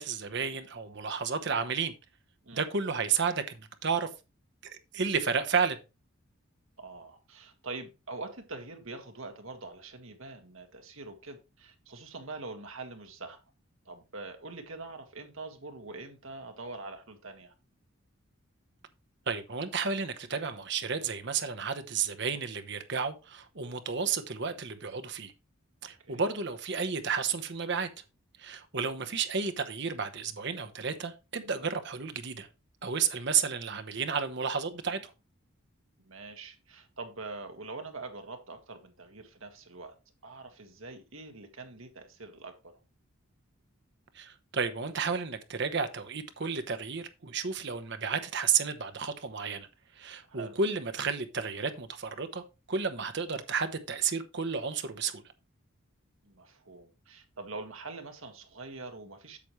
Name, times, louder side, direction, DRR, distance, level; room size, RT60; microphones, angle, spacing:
voice 1, 0.0-1.9 2.5-4.1 4.6-5.8 19.3-25.3 25.8-27.9 28.4-32.5 32.8-35.0 44.1-49.7 50.0-52.4 52.7-55.2, right 5 dB, 55° right, 0.9 m, -32 dB
voice 2, 6.8-13.4 13.8-17.5 25.8-26.2 36.0-39.9 40.2-42.7 50.3-50.6 56.2-59.4, right 3 dB, 70° right, 1.6 m, -44 dB
8.4 x 6.9 x 3.1 m
head